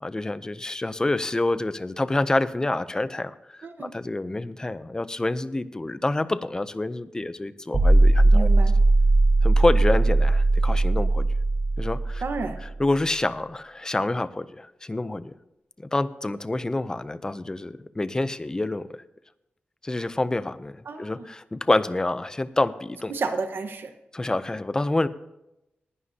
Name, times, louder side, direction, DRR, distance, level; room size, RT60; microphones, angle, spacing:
voice 1, 0.0-8.5 9.4-11.3 11.8-12.2 12.6-15.3 15.8-18.9 19.8-23.1 24.1-25.1, left 2 dB, 20° left, 14 dB, 0.5 m, -27 dB
sound 1, 7.7-12.8, right 2 dB, 35° right, 1.4 m, -19 dB
voice 2, 8.3-8.7 12.2-12.6 20.9-21.1 23.1-23.9, right 4 dB, 75° right, 7 dB, 1.2 m, -30 dB
19.0 x 11.0 x 2.8 m, 0.90 s
wide cardioid pair, 130°, 4 cm